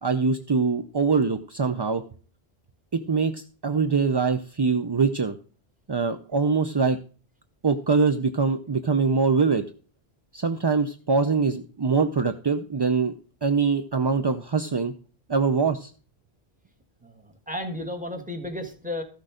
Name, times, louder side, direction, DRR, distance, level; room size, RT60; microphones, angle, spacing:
voice 1, 0.0-2.0 2.9-5.4 5.9-7.0 7.6-9.6 10.3-13.1 13.4-14.9 15.3-15.9, right 4 dB, 35° right, 8 dB, 0.4 m, -23 dB
voice 2, 17.0-19.0, left 1 dB, 5° right, 5 dB, 1.6 m, -33 dB
14.0 x 6.5 x 5.0 m, 0.38 s
omnidirectional pair, 1.1 m